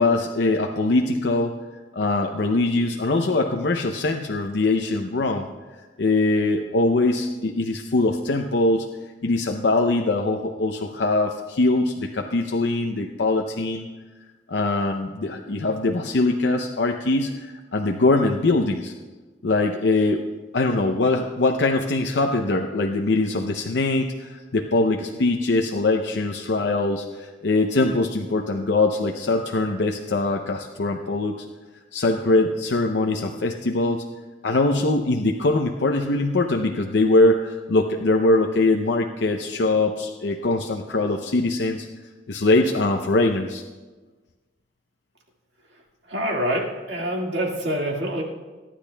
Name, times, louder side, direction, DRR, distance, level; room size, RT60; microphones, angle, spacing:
voice 1, 0.0-1.6 1.9-5.5 6.0-8.9 9.2-13.9 14.5-18.9 19.4-20.3 20.5-31.5 31.9-34.0 34.4-41.9 42.3-43.6, left 2 dB, 70° left, 3 dB, 0.6 m, -22 dB
voice 2, 46.1-48.2, equal, 70° right, 0 dB, 2.0 m, -26 dB
23.5 x 10.0 x 2.3 m, 1.3 s
head